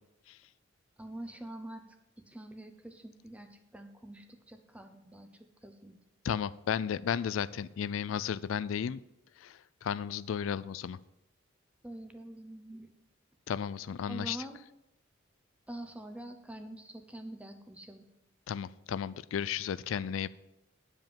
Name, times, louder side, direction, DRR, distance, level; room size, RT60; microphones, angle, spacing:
voice 1, 1.0-1.8 2.3-5.3 5.6-6.0 11.8-12.9 14.1-14.6 15.7-18.1, right 1 dB, 5° right, 7 dB, 0.8 m, -45 dB
voice 2, 6.2-9.0 9.4-9.5 9.8-11.0 13.5-14.4 18.5-20.3, left 8 dB, 85° left, 18 dB, 0.3 m, -33 dB
9.4 x 5.2 x 7.4 m, 0.89 s
head